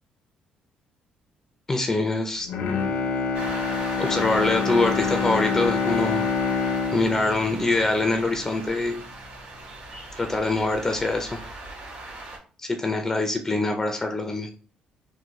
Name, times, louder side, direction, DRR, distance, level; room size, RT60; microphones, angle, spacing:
voice 1, 1.7-2.5 4.0-6.2 6.9-9.0 10.2-11.4 12.6-14.5, left 2 dB, 20° left, 4 dB, 0.4 m, -24 dB
Bowed string instrument, 2.4-8.7 9.1-9.2, left 5 dB, 70° left, 0.6 m, -27 dB
sound 1, 3.3-12.4, right 2 dB, 55° right, 1.4 m, -38 dB
3.6 x 2.2 x 3.0 m, 0.40 s
cardioid pair, 120°, 3 cm